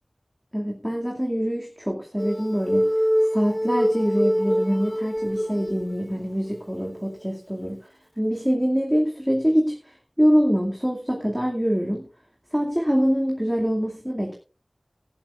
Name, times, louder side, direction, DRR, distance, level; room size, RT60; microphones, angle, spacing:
voice 1, 0.5-2.9 3.3-7.8 8.2-12.0 12.5-14.4, equal, 5° right, -1 dB, 2.3 m, -24 dB
sound 1, 2.2-6.0 6.5-6.6 7.0-7.1, equal, 15° left, 1.7 m, -24 dB
18.5 x 11.5 x 2.5 m, 0.34 s
wide cardioid pair, 45°, 0 cm